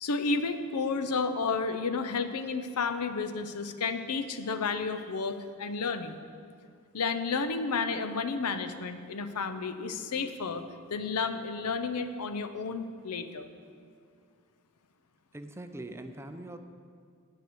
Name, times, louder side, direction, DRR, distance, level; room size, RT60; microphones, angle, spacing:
voice 1, 0.0-6.2 6.9-10.6 10.9-13.5, left 4 dB, 85° left, 10 dB, 0.7 m, -31 dB
voice 2, 15.3-16.6, right 1 dB, 10° right, 7 dB, 0.5 m, -43 dB
9.5 x 5.9 x 7.7 m, 2.2 s
head